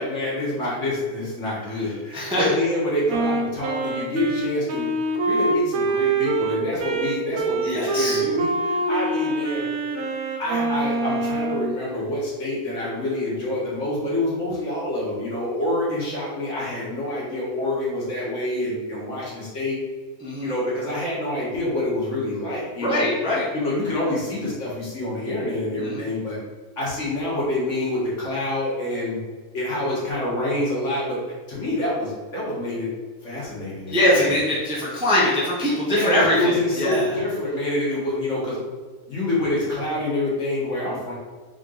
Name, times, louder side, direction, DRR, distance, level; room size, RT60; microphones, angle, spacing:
voice 1, 0.0-4.9 5.2-9.7 10.4-19.8 20.4-23.1 23.5-26.4 26.8-29.2 29.5-31.2 31.5-32.9 33.2-34.4 35.9-38.6 39.1-41.1, left 1 dB, 55° left, -6 dB, 1.8 m, -27 dB
voice 2, 2.1-2.4 7.6-8.2 20.2-20.5 22.8-23.4 25.8-26.0 33.9-37.2, left 1 dB, 5° right, -6 dB, 0.7 m, -22 dB
Wind instrument woodwind instrument, 3.1-11.7, right 3 dB, 75° right, 1.0 m, -25 dB
3.8 x 3.6 x 3.8 m, 1.4 s
omnidirectional pair, 1.5 m